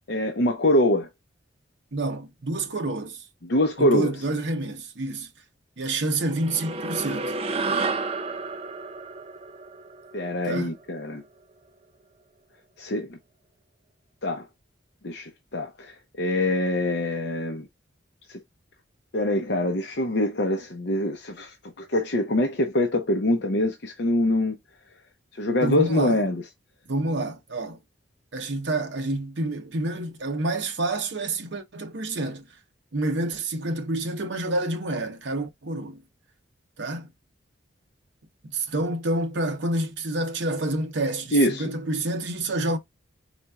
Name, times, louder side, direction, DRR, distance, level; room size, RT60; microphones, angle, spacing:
voice 1, 0.1-1.1 3.4-4.1 10.1-11.2 12.8-13.2 14.2-14.5 15.0-17.7 18.3-18.4 19.1-24.6 25.4-26.4 41.3-41.7, left 1 dB, 55° left, 0.7 m, -24 dB
voice 2, 1.9-3.2 3.8-5.3 5.8-7.4 10.4-10.7 25.6-26.2 26.9-27.8 28.3-32.5 32.9-36.0 36.8-37.1 38.4-42.8, right 2 dB, 65° right, 0.8 m, -28 dB
sound 1, 6.3-11.0, right 3 dB, 30° right, 0.4 m, -31 dB
4.4 x 4.0 x 2.3 m
head